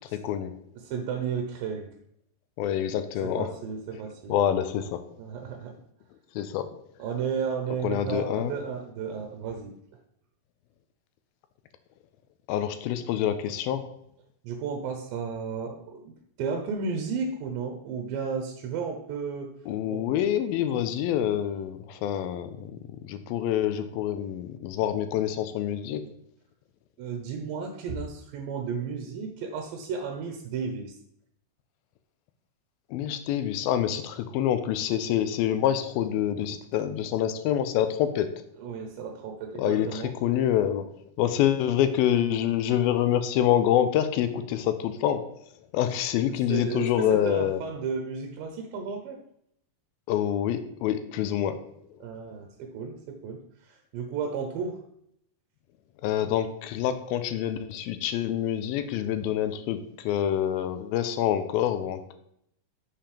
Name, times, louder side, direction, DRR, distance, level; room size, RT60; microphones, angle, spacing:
voice 1, 0.1-0.5 2.6-3.5 4.3-5.0 6.4-6.7 7.8-8.5 12.5-13.9 19.7-22.7 23.0-26.0 32.9-38.3 39.6-40.9 41.2-45.3 45.7-47.6 50.1-51.6 56.0-62.1, left 10 dB, 90° left, 10 dB, 2.5 m, -26 dB
voice 2, 0.8-1.9 3.2-4.4 5.2-5.8 7.0-9.7 14.4-19.5 19.9-20.0 27.0-30.9 38.6-40.1 46.5-49.2 52.0-54.8, right 5 dB, 80° right, 3 dB, 2.5 m, -33 dB
6.9 x 5.7 x 3.3 m, 0.72 s
omnidirectional pair, 4.1 m